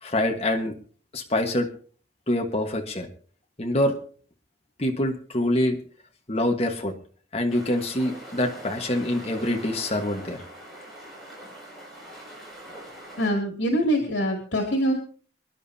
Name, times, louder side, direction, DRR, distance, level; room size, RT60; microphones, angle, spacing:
voice 1, 0.0-0.7 1.1-1.7 2.3-3.1 3.6-3.9 4.8-5.8 6.3-6.9 7.3-10.4, left 1 dB, 35° left, 2 dB, 1.5 m, -25 dB
sound 1, 7.5-13.3, right 1 dB, ahead, 6.4 m, -42 dB
voice 2, 13.2-14.9, equal, 75° left, 1 dB, 2.8 m, -24 dB
25.5 x 11.0 x 2.8 m, 0.43 s
head